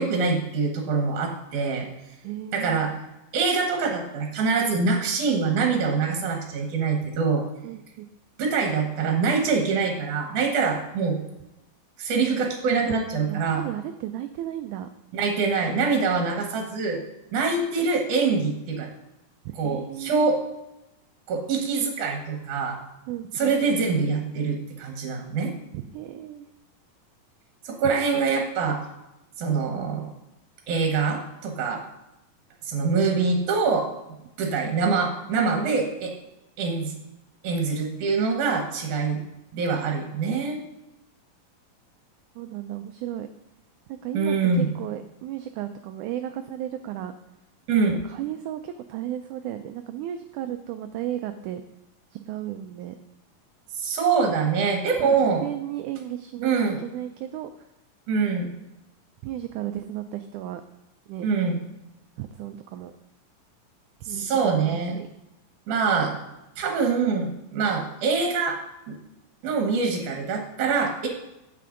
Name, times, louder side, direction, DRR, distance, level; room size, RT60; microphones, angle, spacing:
voice 1, 0.0-1.9 2.5-2.9 3.3-7.4 8.4-11.2 12.0-13.6 15.1-17.0 17.3-18.9 19.6-20.4 21.3-22.8 23.4-25.5 27.6-28.8 29.4-30.0 30.7-31.8 32.7-33.9 34.4-36.1 36.6-36.9 37.4-39.2 39.5-40.6 44.1-44.7 47.7-48.0 53.8-55.4 56.4-56.8 58.1-58.5 61.2-61.6 64.0-65.0 65.7-66.2 66.6-68.6 68.9-69.0 69.4-71.1, right 5 dB, 65° right, 2 dB, 2.5 m, -24 dB
voice 2, 2.2-2.9 7.6-8.1 12.8-13.0 13.3-14.9 19.5-20.4 23.1-23.5 25.7-26.5 42.4-43.3 43.9-47.1 47.9-51.6 52.1-53.0 55.0-57.5 59.2-60.6 61.1-61.3 62.2-62.9 64.1-64.3 64.5-65.1, right 12 dB, 85° right, 8 dB, 1.8 m, -34 dB
9.2 x 7.8 x 3.8 m, 0.91 s
omnidirectional pair, 4.0 m